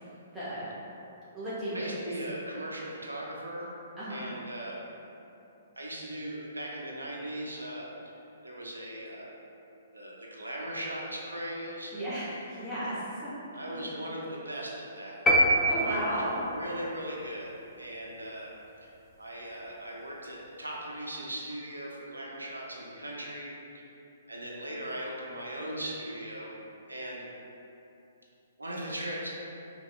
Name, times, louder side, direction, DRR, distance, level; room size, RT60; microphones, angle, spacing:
voice 1, 0.3-0.7 1.3-1.9 4.0-4.2 11.9-13.9 15.7-16.4, right 1 dB, 5° right, -14 dB, 0.9 m, -35 dB
voice 2, 1.7-3.7 4.1-4.8 5.8-9.3 9.9-11.9 13.5-15.3 15.8-16.2 16.5-17.5 17.8-18.5 18.8-18.9 19.2-23.5 24.3-26.5 26.9-27.3 28.6-29.3, right 1 dB, 85° right, -3 dB, 0.6 m, -38 dB
sound 1, 15.3-16.5, right 1 dB, 10° left, 0.4 m, -24 dB
5.2 x 2.3 x 2.2 m, 2.9 s
figure-of-eight pair, 125°, 0 cm